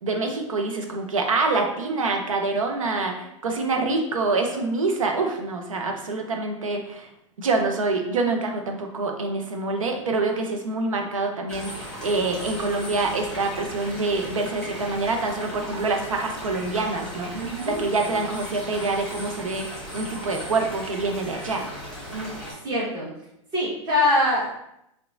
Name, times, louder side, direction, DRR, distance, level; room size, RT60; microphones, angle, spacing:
voice 1, 0.0-7.1 7.4-17.3 17.7-21.7, right 3 dB, 90° right, 3 dB, 0.5 m, -26 dB
sound 1, 11.5-22.5, equal, 5° left, 1.1 m, -37 dB
voice 2, 17.3-17.8 18.0-18.2 22.1-22.3 22.6-23.1 23.5-24.6, left 1 dB, 25° right, -6 dB, 1.2 m, -24 dB
2.8 x 2.2 x 2.5 m, 0.81 s
hypercardioid pair, 110°, 17 cm